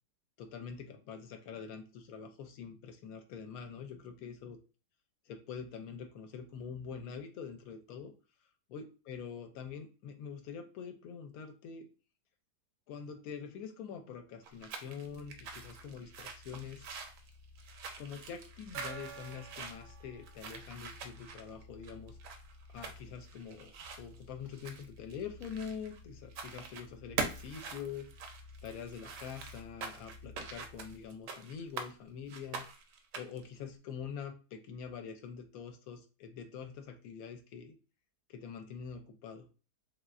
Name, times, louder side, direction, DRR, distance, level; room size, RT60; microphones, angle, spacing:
voice 1, 0.4-4.6 5.3-8.1 8.7-11.9 12.9-16.9 18.0-22.2 22.7-28.1 28.6-32.7 33.2-37.8 38.3-39.5, left 7 dB, 70° left, 6 dB, 0.9 m, -45 dB
sound 1, 14.4-26.0 26.3-26.9 27.2-31.9 32.3-33.5, right 5 dB, 70° right, 0.8 m, -44 dB
sound 2, 15.0-31.2, left 3 dB, 45° left, 1.1 m, -56 dB
Gong, 18.7-22.0, right 7 dB, 85° right, 1.2 m, -51 dB
3.1 x 2.7 x 2.3 m, 0.34 s
omnidirectional pair, 1.7 m